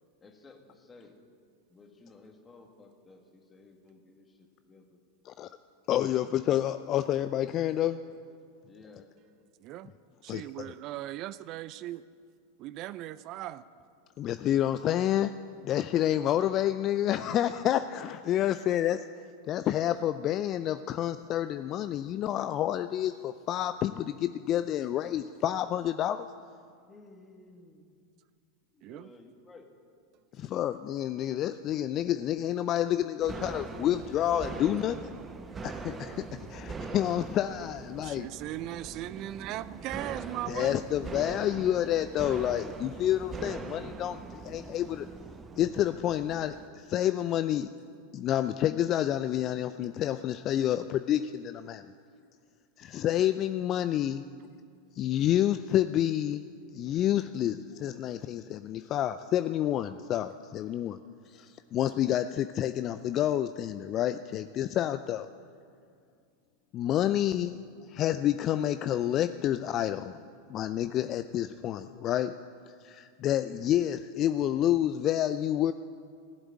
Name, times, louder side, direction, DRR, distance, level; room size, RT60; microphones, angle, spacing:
voice 1, 0.2-1.2 1.7-5.0 8.7-9.1 26.9-27.8 28.7-29.7 30.4-30.5 35.4-35.5, left 3 dB, 20° left, 3 dB, 2.0 m, -55 dB
voice 2, 5.9-8.0 10.3-10.7 14.2-15.3 15.6-19.1 19.5-26.3 30.4-35.1 35.6-38.3 40.5-45.1 45.6-47.7 48.1-51.8 52.8-54.2 55.0-56.4 56.7-61.0 61.3-65.3 66.7-67.6 67.9-70.2 70.5-72.3 72.8-75.7, left 11 dB, 40° left, 12 dB, 0.4 m, -29 dB
voice 3, 9.6-9.9 10.2-12.0 12.6-13.6 28.8-29.1 38.0-40.9, right 14 dB, 45° right, 17 dB, 0.4 m, -38 dB
sound 1, 33.2-46.7, right 4 dB, 20° right, 1.0 m, -42 dB
16.0 x 8.0 x 8.8 m, 2.2 s
figure-of-eight pair, 90°, 0 cm